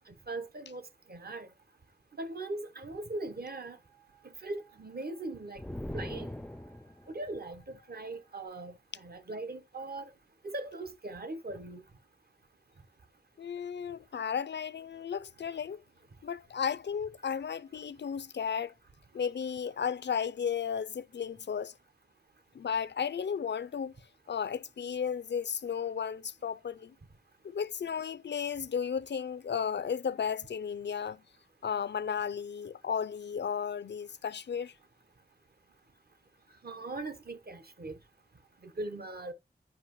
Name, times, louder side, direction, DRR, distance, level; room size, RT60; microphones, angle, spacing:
voice 1, 0.1-1.5 2.2-3.8 4.2-5.6 5.9-6.3 7.1-10.1 10.4-11.8 36.6-38.0 38.6-39.3, right 2 dB, 60° right, 1.0 m, -40 dB
sound 1, 2.8-8.5, right 3 dB, 80° right, 5.1 m, -66 dB
sound 2, 5.5-7.2, left 1 dB, 5° left, 0.4 m, -40 dB
voice 2, 13.4-15.8 16.2-18.7 19.1-21.7 22.5-23.9 24.3-26.9 27.4-31.2 31.6-34.7, left 7 dB, 75° left, 0.4 m, -34 dB
9.9 x 5.2 x 3.0 m
wide cardioid pair, 80°, 18 cm